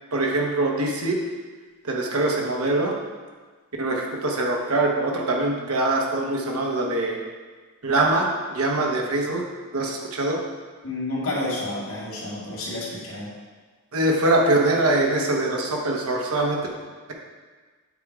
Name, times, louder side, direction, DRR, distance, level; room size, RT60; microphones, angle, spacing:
voice 1, 0.1-1.2 1.8-2.9 3.8-7.2 7.8-9.4 9.7-10.4 13.9-16.6, right 2 dB, 75° right, -1 dB, 1.0 m, -23 dB
voice 2, 10.8-13.3, left 2 dB, 65° left, -5 dB, 2.2 m, -30 dB
8.4 x 3.6 x 4.8 m, 1.4 s
head